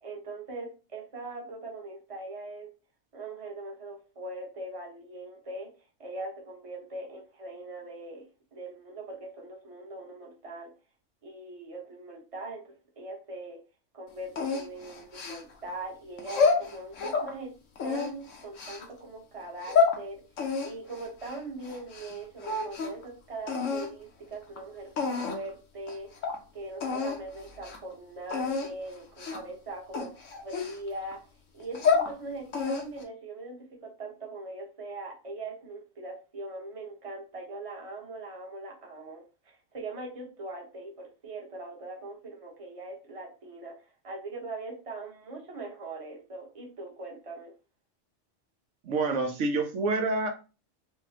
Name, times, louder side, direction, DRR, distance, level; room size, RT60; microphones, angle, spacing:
voice 1, 0.0-2.7 3.1-5.7 6.0-8.3 8.5-10.7 11.2-13.6 13.9-17.5 17.8-20.2 20.6-26.1 26.5-30.1 30.4-31.2 31.5-43.7 44.0-47.5, right 2 dB, 30° right, -1 dB, 1.0 m, -41 dB
sound 1, 14.4-15.7 16.2-17.3 17.8-18.8 19.4-20.0 20.4-22.1 22.4-23.0 23.5-23.9 24.6-24.7 25.0-25.5 25.9-26.0 26.2-26.4 26.8-27.2 27.5-27.8 28.3-28.7 29.2-29.5 29.9-31.1 31.6-32.1 32.5-33.0, left 5 dB, 80° left, 1.2 m, -28 dB
voice 2, 48.8-50.3, right 3 dB, 75° right, 4 dB, 0.9 m, -27 dB
4.9 x 2.2 x 2.8 m, 0.33 s
omnidirectional pair, 1.3 m